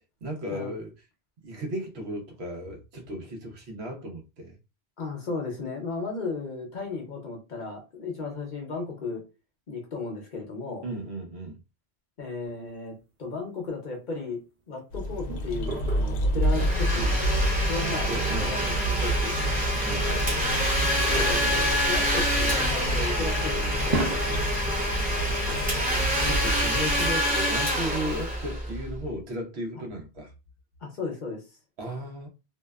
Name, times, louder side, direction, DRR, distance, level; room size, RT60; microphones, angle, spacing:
voice 1, 0.2-0.9 1.4-4.6 10.8-11.6 17.7-17.8 18.1-18.8 19.8-21.0 25.5-25.6 26.2-30.3 31.8-32.3, right 1 dB, 75° right, 1.0 m, -35 dB
voice 2, 5.0-9.2 9.7-10.8 12.2-14.4 14.7-17.2 17.7-19.3 21.0-24.0 30.8-31.4, left 3 dB, 50° left, 0.8 m, -35 dB
sound 1, 12.5-12.6 13.7-13.8 15.0-16.4 16.9-17.0 18.1-18.5 19.6-19.7 21.0-22.9 23.2-23.5 23.8-24.2, right 3 dB, 45° right, 0.7 m, -34 dB
sound 2, 14.9-27.1, equal, 80° left, 0.8 m, -29 dB
Domestic sounds home sounds, 16.4-29.0, equal, 10° right, 0.7 m, -27 dB
2.7 x 2.1 x 2.3 m
omnidirectional pair, 1.1 m